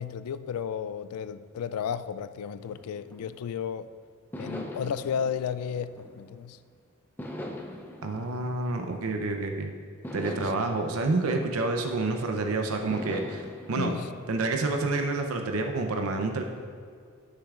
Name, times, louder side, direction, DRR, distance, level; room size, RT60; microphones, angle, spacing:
voice 1, 0.0-3.9 4.4-6.6 10.4-10.5 13.8-14.1, left 7 dB, 90° left, 0.3 m, -33 dB
sound 1, 2.6-3.7 4.3-6.6 7.2-9.4 10.0-12.3 12.9-15.1, left 1 dB, 10° left, 0.5 m, -42 dB
voice 2, 8.0-9.7 10.1-13.9 14.3-16.4, right 3 dB, 75° right, 0.6 m, -28 dB
11.5 x 6.6 x 2.4 m
head